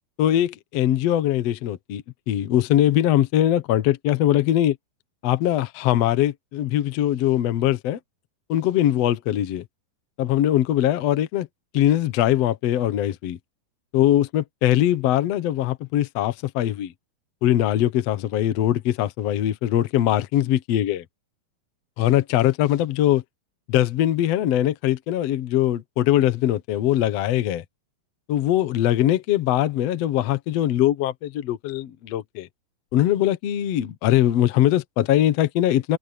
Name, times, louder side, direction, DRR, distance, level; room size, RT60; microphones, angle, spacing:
voice 1, 0.2-4.8 5.2-8.0 8.5-9.6 10.2-11.5 11.7-13.4 13.9-16.9 17.4-21.0 22.0-23.2 23.7-27.6 28.3-32.5 32.9-36.0, left 12 dB, 65° left, 1.7 m, -21 dB
open air
omnidirectional pair, 4.5 m